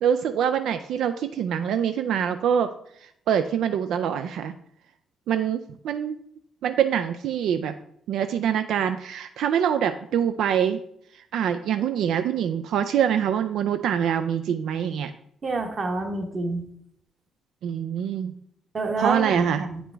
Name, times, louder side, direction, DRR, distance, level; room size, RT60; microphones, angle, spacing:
voice 1, 0.0-2.7 3.0-4.5 5.3-6.2 6.6-7.7 8.1-10.8 11.1-15.1 17.6-18.3 19.0-19.6, right 8 dB, 80° right, 10 dB, 0.3 m, -25 dB
voice 2, 15.4-16.6 18.7-19.8, right 3 dB, 35° right, 4 dB, 1.1 m, -28 dB
8.6 x 5.0 x 3.3 m, 0.71 s
cardioid pair, 110°, 0 cm